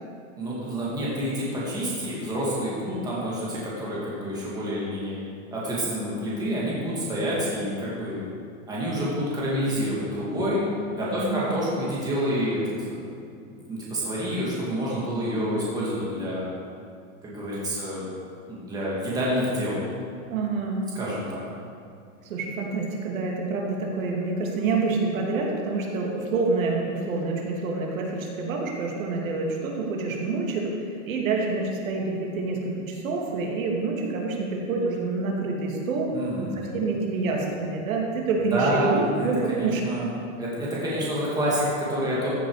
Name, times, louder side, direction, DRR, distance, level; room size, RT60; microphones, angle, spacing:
voice 1, 0.4-5.2 5.5-8.2 8.7-10.6 10.9-12.6 12.9-13.1 13.7-16.5 17.2-18.1 18.5-19.8 20.9-21.4 36.1-36.8 38.3-42.3, equal, 10° right, -7 dB, 2.2 m, -28 dB
voice 2, 11.1-11.5 20.3-20.9 22.3-39.8, right 3 dB, 80° right, -1 dB, 2.6 m, -27 dB
14.5 x 8.2 x 5.0 m, 2.3 s
supercardioid pair, 175°, 40 cm